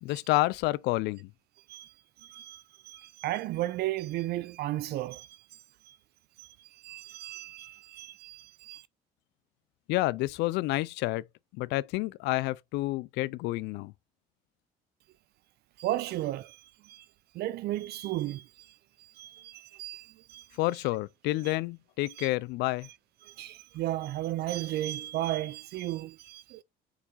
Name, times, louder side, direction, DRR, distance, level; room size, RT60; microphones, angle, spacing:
voice 1, 0.0-1.3 9.9-11.2 11.5-13.9 20.6-22.9, left 19 dB, 90° left, 0.4 m, -29 dB
voice 2, 2.2-5.4 5.9-6.0 6.4-8.8 15.8-17.0 17.3-18.7 19.0-20.5 22.2-22.3 23.2-26.6, right 15 dB, 70° right, 0.5 m, -35 dB
4.9 x 4.8 x 4.1 m
cardioid pair, 110°, 17 cm